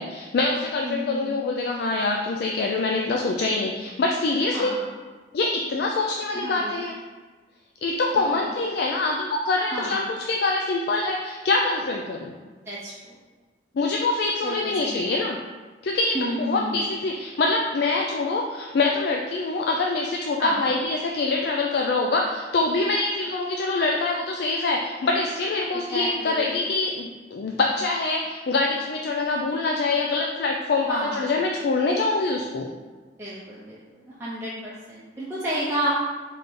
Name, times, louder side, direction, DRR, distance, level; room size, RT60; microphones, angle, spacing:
voice 1, 0.0-4.8 5.3-6.9 7.8-12.3 13.7-15.4 15.8-32.7, left 3 dB, 60° left, 0 dB, 0.4 m, -25 dB
voice 2, 0.8-1.4 4.5-5.0 6.3-6.7 8.2-8.4 9.7-10.1 12.6-13.1 14.4-15.1 16.1-16.9 20.4-20.6 25.7-26.6 30.8-31.3 33.2-35.9, equal, 15° right, -8 dB, 0.6 m, -31 dB
3.7 x 3.3 x 4.1 m, 1.3 s
head